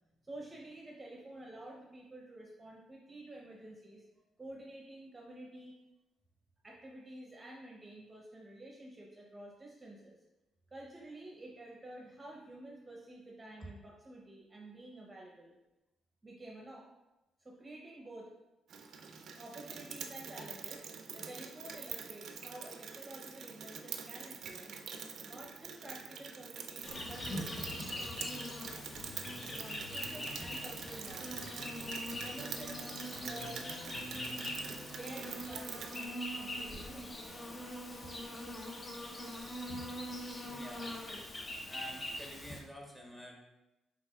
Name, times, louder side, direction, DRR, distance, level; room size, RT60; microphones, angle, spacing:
voice 1, 0.2-4.0 4.4-5.8 6.6-10.2 10.7-15.5 16.2-16.9 17.4-18.3 19.4-20.8 21.1-24.8 25.2-28.3 29.4-31.4 32.2-33.6 34.9-37.3, right 1 dB, 20° right, -2 dB, 0.8 m, -50 dB
Rain, 18.7-36.0, right 6 dB, 70° right, 0.5 m, -46 dB
Insect, 26.8-42.6, left 1 dB, 30° left, 0.9 m, -42 dB
sound 1, 26.9-35.3, left 2 dB, 70° left, 0.5 m, -53 dB
voice 2, 40.5-40.9 41.6-43.4, left 1 dB, 10° left, -1 dB, 1.2 m, -49 dB
5.7 x 3.8 x 2.3 m, 0.99 s
cardioid pair, 90°, 0 cm